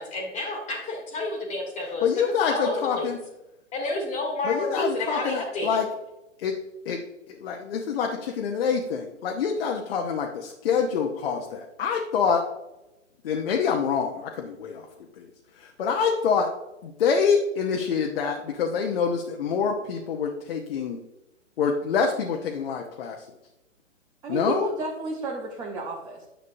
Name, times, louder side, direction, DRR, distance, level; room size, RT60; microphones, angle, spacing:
voice 1, 0.0-2.1 2.5-3.1 3.7-5.8, left 2 dB, 15° left, 1 dB, 1.6 m, -30 dB
voice 2, 2.0-3.2 4.4-5.9 6.4-6.6 6.9-7.0 7.3-12.4 13.2-14.9 15.2-15.3 15.6-16.5 16.8-21.0 21.6-23.2 24.3-24.7, left 6 dB, 50° left, 2 dB, 1.0 m, -26 dB
voice 3, 24.2-26.2, right 3 dB, 10° right, 0 dB, 0.5 m, -32 dB
10.0 x 6.5 x 2.7 m, 0.95 s
figure-of-eight pair, 115°, 37 cm